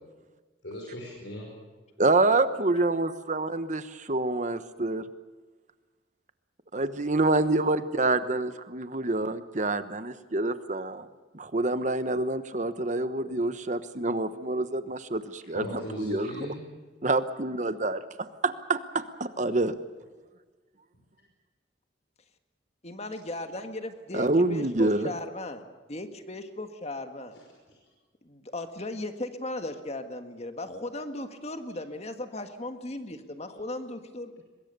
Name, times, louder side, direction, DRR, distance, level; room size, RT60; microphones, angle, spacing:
voice 1, 0.6-1.6 15.5-16.7, left 1 dB, 85° left, -2 dB, 5.5 m, -37 dB
voice 2, 2.0-5.0 6.7-11.1 11.3-15.7 16.0-16.5 17.0-19.7 24.1-25.1, right 2 dB, 40° right, 12 dB, 1.1 m, -27 dB
voice 3, 22.8-27.3 28.2-34.4, left 2 dB, 35° left, 7 dB, 1.7 m, -37 dB
23.0 x 21.5 x 6.8 m, 1.4 s
head